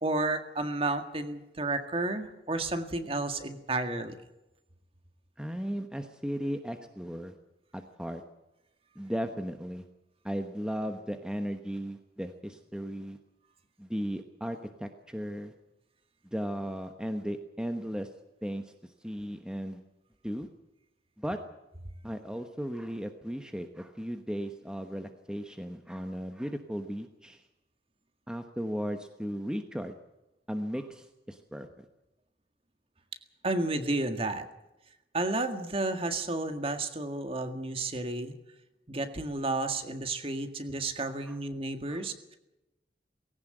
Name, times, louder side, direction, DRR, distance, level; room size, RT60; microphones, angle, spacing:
voice 1, 0.0-4.2 33.4-34.5 35.1-38.3 38.9-42.1, right 2 dB, 30° right, 7 dB, 1.9 m, -31 dB
voice 2, 5.4-7.3 7.7-8.2 8.9-9.9 10.2-13.2 13.8-15.5 16.2-18.1 18.4-19.8 20.2-20.5 21.2-21.4 22.0-27.5 28.3-29.9 30.5-31.9 41.2-41.4 41.9-42.0, equal, 5° right, 6 dB, 1.1 m, -36 dB
19.5 x 17.5 x 7.9 m, 0.95 s
head